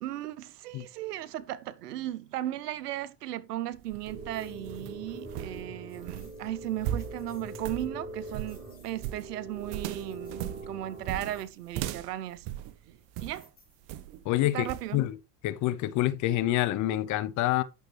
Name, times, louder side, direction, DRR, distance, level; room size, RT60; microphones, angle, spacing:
voice 1, 0.0-12.5 13.2-13.5 14.5-15.0, right 13 dB, 85° right, 0.8 m, -36 dB
sound 1, 3.7-13.4 13.9-14.2 14.7-14.9, right 12 dB, 55° right, 0.9 m, -38 dB
sound 2, 4.1-11.4, right 2 dB, 25° right, 5.9 m, -43 dB
sound 3, 4.3-4.8 5.9-6.5 6.8-7.6 8.0-9.1 9.9-10.6 11.0-11.6 13.1-14.0, left 4 dB, 20° left, 3.6 m, -62 dB
voice 2, 14.2-15.2 15.4-17.6, left 15 dB, 40° left, 0.7 m, -27 dB
9.3 x 6.3 x 3.2 m
hypercardioid pair, 105°, 46 cm